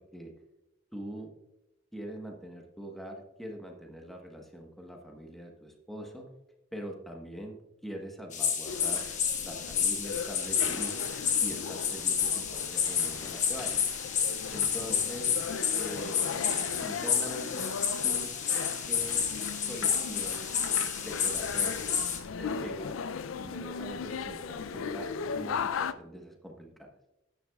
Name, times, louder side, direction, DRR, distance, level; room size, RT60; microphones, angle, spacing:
voice 1, 0.9-1.3 1.9-6.3 6.7-7.6 7.8-9.0 9.4-11.1 11.4-13.8 14.5-15.4 15.8-16.2 16.8-17.7 18.0-18.4 18.9-19.2 19.6-20.5 21.0-21.8 22.4-23.0 23.3-26.9, equal, ahead, 1 dB, 1.2 m, -43 dB
sound 1, 8.3-22.2, left 7 dB, 35° left, 1.1 m, -30 dB
sound 2, 8.6-25.9, left 6 dB, 75° left, 0.4 m, -38 dB
12.5 x 9.6 x 2.3 m, 0.96 s
head